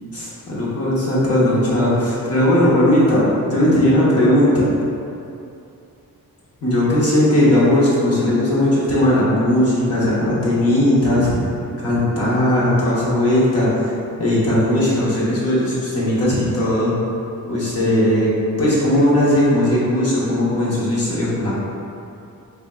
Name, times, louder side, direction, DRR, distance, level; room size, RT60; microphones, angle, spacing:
voice 1, 0.1-4.6 6.6-11.3 11.8-13.9 14.2-16.9 17.5-18.3 18.6-21.5, left 1 dB, 40° left, -8 dB, 0.9 m, -17 dB
3.8 x 3.6 x 2.2 m, 2.6 s
wide cardioid pair, 175°, 36 cm